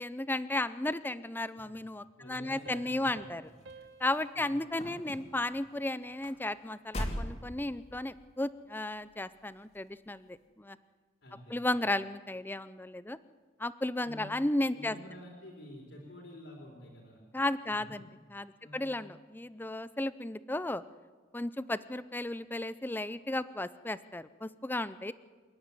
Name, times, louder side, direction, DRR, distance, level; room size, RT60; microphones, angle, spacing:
voice 1, 0.0-3.4 4.0-10.8 11.5-13.2 13.6-15.0 17.3-20.8 21.3-25.1, left 1 dB, 10° left, 15 dB, 0.5 m, -34 dB
voice 2, 2.2-3.1 4.3-4.8 11.2-11.6 14.0-14.2 14.7-17.2 17.7-18.0 18.6-18.9, left 1 dB, 70° left, -2 dB, 4.1 m, -49 dB
sound 1, 2.6-5.9, right 4 dB, 75° right, 1.2 m, -54 dB
sound 2, 3.4-8.2 8.9-9.3 9.7-9.8, equal, 35° left, 3.0 m, -41 dB
28.0 x 9.7 x 9.8 m, 1.5 s
head